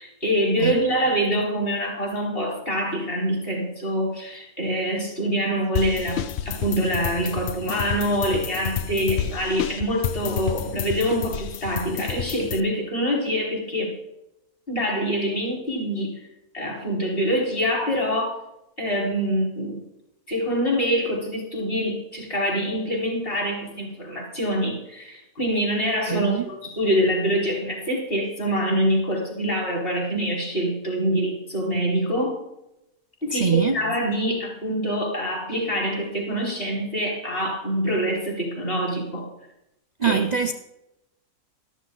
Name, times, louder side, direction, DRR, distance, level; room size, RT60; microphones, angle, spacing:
voice 1, 0.0-13.9 14.7-16.2 16.5-18.4 18.8-19.8 20.3-32.4 33.2-39.3 40.0-40.2, equal, 35° left, 5.0 m, -25 dB
sound 1, 5.7-12.6, left 9 dB, 65° left, 0.6 m, -30 dB
voice 2, 26.1-26.5 33.3-33.8 40.0-40.5, right 6 dB, 80° right, 0.3 m, -23 dB
13.5 x 12.5 x 4.0 m
omnidirectional pair, 1.7 m